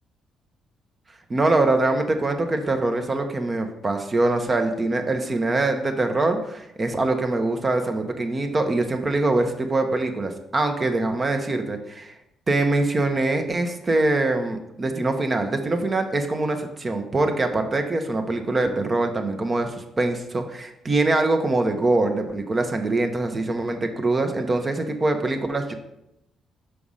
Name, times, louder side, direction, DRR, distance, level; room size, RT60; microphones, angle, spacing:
voice 1, 1.3-12.1 12.5-25.7, right 2 dB, 30° right, 5 dB, 1.1 m, -23 dB
5.8 x 5.0 x 5.6 m, 0.85 s
cardioid pair, 90°, 0 cm